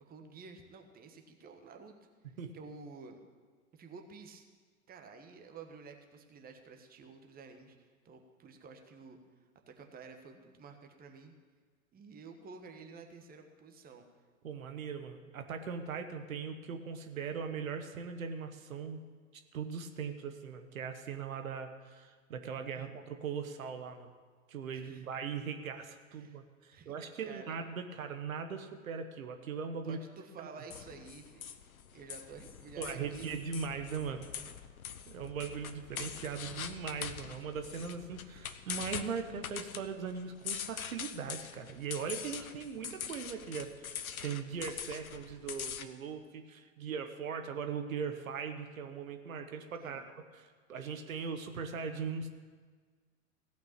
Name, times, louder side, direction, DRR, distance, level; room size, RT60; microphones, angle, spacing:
voice 1, 0.1-2.0 2.5-3.2 3.7-4.5 4.9-9.2 9.7-11.3 11.9-14.1 22.7-22.9 24.7-25.1 26.1-26.4 26.7-26.9 27.2-27.5 29.8-31.6 31.9-33.3 49.8-50.0, right 4 dB, 20° right, 4 dB, 1.4 m, -51 dB
voice 2, 14.4-19.0 19.5-24.1 24.5-30.0 30.4-30.5 32.8-34.2 35.1-52.3, right 6 dB, 75° right, 7 dB, 1.2 m, -40 dB
sound 1, 30.7-45.8, left 8 dB, 80° left, 0.9 m, -43 dB
16.0 x 5.9 x 8.8 m, 1.5 s
hypercardioid pair, 100°, 42 cm